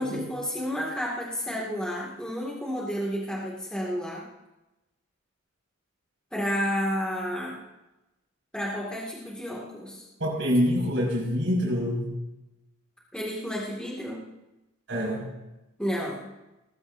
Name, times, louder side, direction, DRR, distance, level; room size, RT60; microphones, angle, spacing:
voice 1, 0.0-4.3 6.3-7.6 8.5-10.0 13.1-14.2 15.8-16.3, equal, 5° left, -4 dB, 2.2 m, -31 dB
voice 2, 10.2-12.1 14.9-15.3, equal, 65° right, -2 dB, 5.6 m, -26 dB
19.5 x 15.0 x 2.7 m, 0.97 s
head